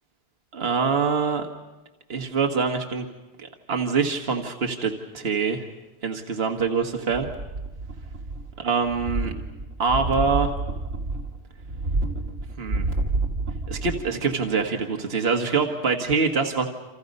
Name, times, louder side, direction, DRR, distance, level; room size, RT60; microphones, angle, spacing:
voice 1, 0.5-1.5 2.1-3.1 3.4-5.6 6.0-7.3 8.6-9.3 9.8-10.5 12.6-12.9 13.7-16.7, right 5 dB, 60° right, 4 dB, 1.8 m, -24 dB
sound 1, 7.1-8.6 8.8-14.2 14.5-14.6, right 2 dB, 85° right, 2.6 m, -29 dB
28.5 x 27.0 x 5.4 m, 1.1 s
omnidirectional pair, 1.2 m